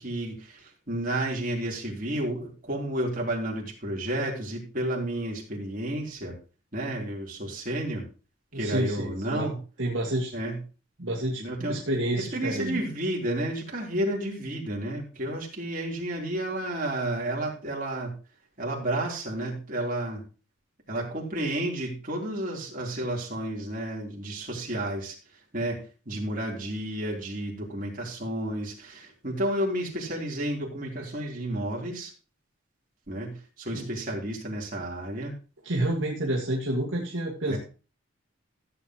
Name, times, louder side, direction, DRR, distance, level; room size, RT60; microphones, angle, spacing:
voice 1, 0.0-6.4 6.7-8.0 8.6-9.5 10.3-10.6 11.4-11.8 12.1-18.1 18.6-20.2 20.9-25.1 25.5-25.8 26.1-32.1 33.1-35.3 37.5-37.6, right 1 dB, 40° right, -2 dB, 3.7 m, -31 dB
voice 2, 8.5-9.5 9.8-10.3 11.0-12.8 33.7-33.9 35.6-37.6, right 1 dB, 60° right, -2 dB, 2.1 m, -29 dB
15.0 x 8.3 x 3.1 m, 0.35 s
head